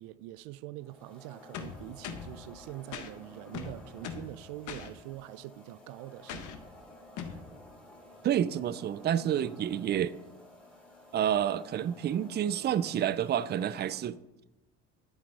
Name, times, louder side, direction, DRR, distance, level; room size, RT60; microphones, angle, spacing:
voice 1, 0.0-6.6, right 16 dB, 90° right, 0.5 m, -44 dB
sound 1, 0.8-14.0, left 1 dB, 5° left, 3.0 m, -53 dB
sound 2, 1.5-2.4 2.9-3.1 3.5-4.3 4.7-4.9 6.3-6.6 7.2-7.4, left 7 dB, 70° left, 1.4 m, -40 dB
voice 2, 8.2-10.2 11.1-14.2, right 10 dB, 35° right, 0.4 m, -29 dB
10.5 x 9.6 x 4.1 m
cardioid pair, 105°, 31 cm